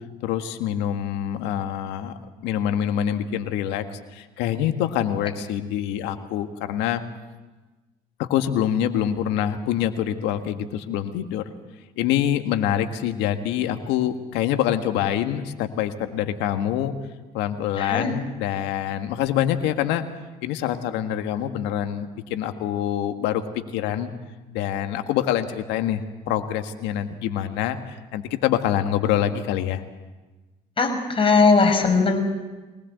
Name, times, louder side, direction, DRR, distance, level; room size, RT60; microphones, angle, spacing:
voice 1, 0.2-2.1 2.4-7.0 8.2-11.5 12.0-16.9 17.3-20.0 20.4-24.1 24.5-29.8, left 10 dB, 75° left, 8 dB, 1.7 m, -25 dB
voice 2, 17.8-18.1 30.8-32.2, left 4 dB, 30° left, 3 dB, 5.9 m, -19 dB
23.5 x 19.0 x 8.0 m, 1.2 s
hypercardioid pair, 65°, 18 cm